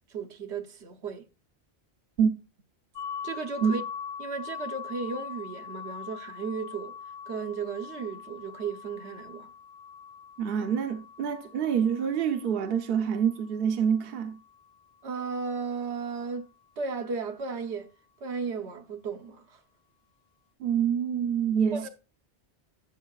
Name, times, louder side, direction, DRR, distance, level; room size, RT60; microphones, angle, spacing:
voice 1, 0.1-1.2 3.2-3.8 4.2-6.9 7.3-9.5 15.0-16.5 16.8-17.9 18.2-19.6 21.7-21.9, right 5 dB, 80° right, 1.2 m, -35 dB
sound 1, 3.0-14.7, left 7 dB, 70° left, 0.8 m, -42 dB
voice 2, 10.4-14.4 20.6-21.9, right 7 dB, 65° right, 0.9 m, -26 dB
12.0 x 6.6 x 2.3 m
omnidirectional pair, 1.1 m